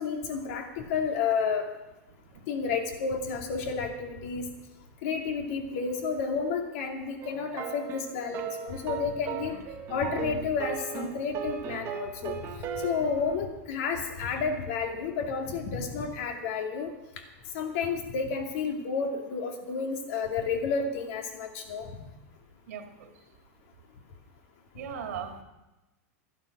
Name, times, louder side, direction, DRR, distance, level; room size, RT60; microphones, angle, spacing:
voice 1, 0.0-1.7 2.5-4.5 5.0-9.6 9.9-12.4 12.8-16.9 17.5-21.9, left 5 dB, 60° left, 3 dB, 2.7 m, -31 dB
sound 1, 7.2-13.4, right 8 dB, 35° right, 1.6 m, -37 dB
voice 2, 22.7-23.1 24.7-25.4, right 8 dB, 75° right, 4 dB, 2.2 m, -38 dB
12.5 x 11.5 x 6.2 m, 1.0 s
supercardioid pair, 130°, 8 cm